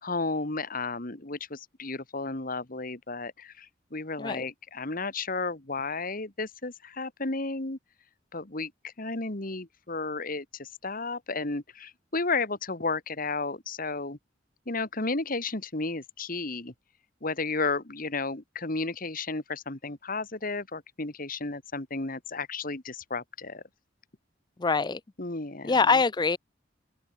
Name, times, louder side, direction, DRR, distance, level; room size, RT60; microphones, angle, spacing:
voice 1, 0.0-7.8 8.3-14.2 14.7-16.7 17.2-23.6 25.2-25.9, left 3 dB, 45° left, 2.0 m, -33 dB
voice 2, 24.6-25.0 25.7-26.4, left 4 dB, 20° left, 0.5 m, -23 dB
head